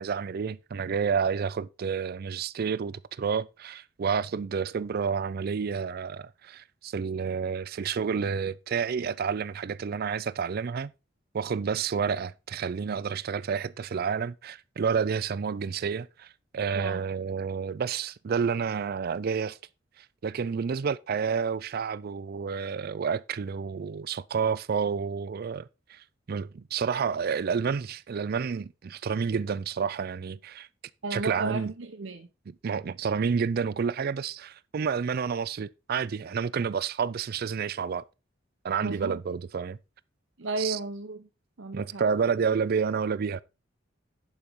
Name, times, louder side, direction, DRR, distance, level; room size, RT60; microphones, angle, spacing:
voice 1, 0.0-10.9 11.3-16.3 16.5-19.6 20.0-26.0 26.3-30.7 31.1-31.7 32.5-38.0 38.6-39.8 40.6-40.8 41.7-43.4, right 6 dB, 55° right, 0.4 m, -29 dB
voice 2, 31.0-32.3 38.8-39.2 40.4-41.3 41.6-42.0, right 3 dB, 80° right, 1.0 m, -34 dB
11.0 x 5.2 x 4.5 m
head